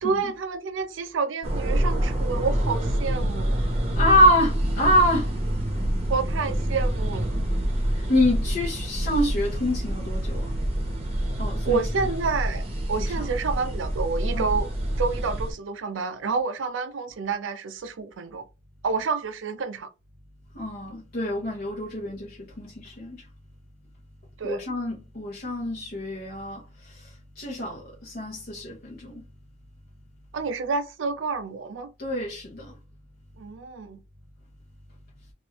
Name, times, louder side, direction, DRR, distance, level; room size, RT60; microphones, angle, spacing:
voice 1, 0.0-3.6 6.1-7.4 11.7-14.7 15.0-18.4 18.8-19.9 24.4-24.6 30.3-31.9 33.4-34.0, right 4 dB, 85° right, 0.5 m, -29 dB
sound 1, 1.4-15.5, right 1 dB, 30° right, 0.8 m, -27 dB
voice 2, 3.9-5.3 7.9-10.5 11.4-11.8 13.0-13.2 14.3-14.5 20.5-23.2 24.4-26.6 27.0-27.1 27.4-29.2 32.0-32.7, equal, 50° left, 0.8 m, -25 dB
3.1 x 2.5 x 2.9 m
head